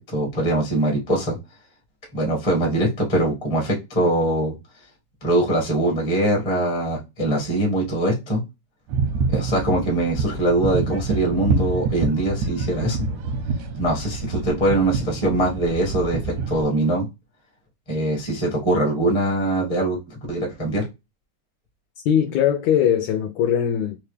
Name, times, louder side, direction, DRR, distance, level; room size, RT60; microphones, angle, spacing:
voice 1, 0.0-1.4 2.1-4.5 5.2-8.4 9.3-13.1 13.8-17.0 17.9-20.8, right 1 dB, 20° left, 0.7 m, -22 dB
sound 1, 8.9-16.6, right 4 dB, 90° right, 2.3 m, -27 dB
voice 2, 22.0-24.0, left 9 dB, 75° left, 1.8 m, -20 dB
5.1 x 2.3 x 3.2 m
omnidirectional pair, 3.6 m